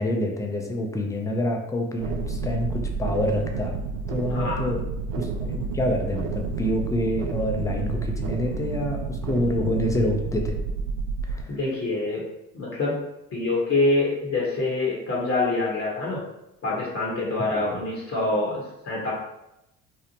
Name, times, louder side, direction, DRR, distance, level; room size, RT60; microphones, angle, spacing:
voice 1, 0.0-3.8 4.1-4.8 5.2-10.6 11.2-11.6 17.5-17.6, left 1 dB, 10° left, 2 dB, 0.3 m, -27 dB
sound 1, 2.0-11.4, right 4 dB, 55° right, 0.5 m, -30 dB
voice 2, 4.3-4.7 11.5-12.2 12.5-13.0 13.3-16.3 16.6-19.1, left 2 dB, 35° left, -4 dB, 0.8 m, -25 dB
2.7 x 2.0 x 2.8 m, 0.88 s
hypercardioid pair, 65°, 40 cm